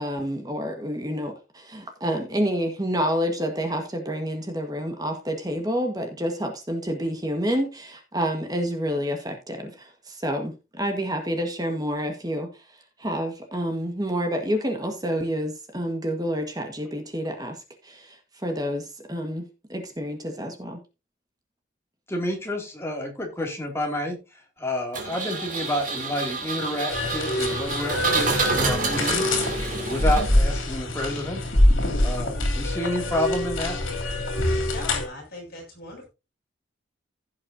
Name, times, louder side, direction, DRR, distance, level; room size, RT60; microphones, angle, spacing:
voice 1, 0.0-12.5 13.0-20.8, equal, 20° right, 1.5 m, -28 dB
voice 2, 22.1-24.2 24.6-29.3 29.8-31.4 32.0-33.8, left 1 dB, 15° left, 2.5 m, -29 dB
Engine, 24.9-30.6, right 3 dB, 40° right, 2.9 m, -28 dB
sound 1, 26.9-35.0, left 1 dB, 90° left, 3.0 m, -24 dB
voice 3, 34.7-36.1, left 2 dB, 50° left, 6.9 m, -39 dB
16.0 x 6.6 x 2.7 m
head